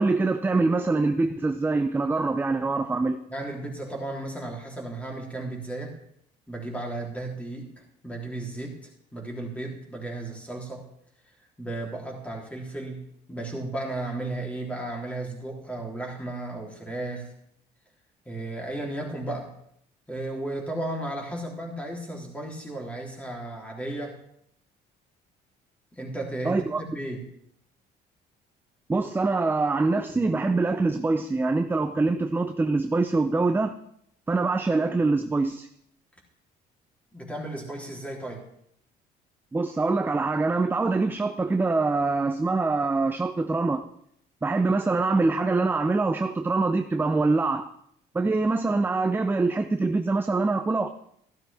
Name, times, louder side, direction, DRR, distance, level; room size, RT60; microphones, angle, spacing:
voice 1, 0.0-3.2 26.4-26.8 28.9-33.7 34.3-35.7 39.5-43.9 44.4-47.7 48.1-50.9, right 3 dB, 10° right, 7 dB, 0.5 m, -24 dB
voice 2, 3.3-5.9 6.5-10.9 11.6-13.0 13.3-17.3 18.2-19.5 20.1-24.2 25.9-27.3 30.1-30.2 37.1-38.5, right 2 dB, 10° left, -1 dB, 3.3 m, -34 dB
13.5 x 12.0 x 3.5 m, 0.71 s
cardioid pair, 110°, 17 cm